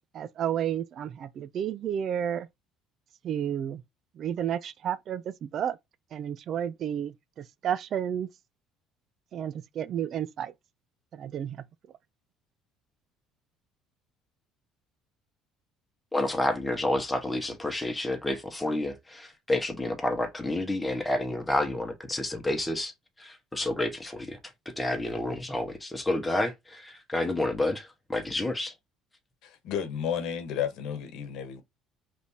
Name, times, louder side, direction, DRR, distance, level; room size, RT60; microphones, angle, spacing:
voice 1, 0.1-2.5 3.2-3.8 4.2-5.8 6.1-8.3 9.3-10.5 11.1-11.6, right 9 dB, 50° right, 0.5 m, -31 dB
voice 2, 16.1-22.9 23.2-24.4 24.6-28.7, left 1 dB, 10° left, 1.2 m, -29 dB
voice 3, 29.4-31.6, left 8 dB, 70° left, 1.1 m, -32 dB
5.1 x 3.4 x 2.8 m
cardioid pair, 110°, 0 cm